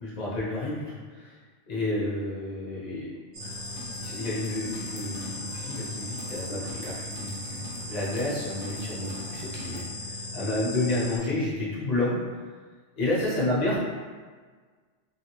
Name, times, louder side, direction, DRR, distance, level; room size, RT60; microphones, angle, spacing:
voice 1, 0.0-1.4 1.7-3.1 3.9-12.4 13.0-13.8, left 2 dB, 35° left, -7 dB, 0.9 m, -30 dB
sound 1, 3.3-11.2, left 2 dB, 75° right, 1.2 m, -37 dB
sound 2, 3.4-9.8, left 1 dB, 55° left, 0.6 m, -45 dB
3.2 x 2.3 x 2.9 m, 1.5 s
omnidirectional pair, 1.3 m